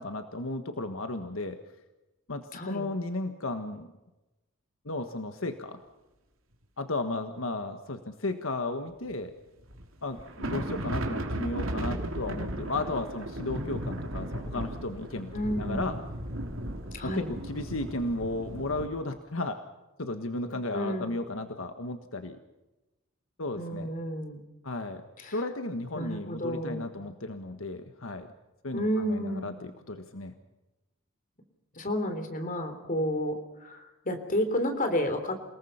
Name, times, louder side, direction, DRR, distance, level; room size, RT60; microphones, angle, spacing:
voice 1, 0.0-1.6 2.3-3.9 4.8-5.8 6.8-9.3 10.0-16.0 17.0-19.6 20.0-22.4 23.4-23.9 24.6-28.3 28.6-30.3, left 2 dB, 80° left, 7 dB, 1.5 m, -34 dB
voice 2, 2.5-2.9 15.3-16.0 16.9-17.3 20.7-21.2 23.6-24.4 25.2-25.4 25.9-26.9 28.7-29.6 31.7-35.4, equal, 40° left, 7 dB, 3.5 m, -31 dB
sound 1, 9.1-9.2 9.6-9.8 10.1-18.9, right 1 dB, 75° right, 3.1 m, -35 dB
29.0 x 19.0 x 5.7 m, 1.0 s
head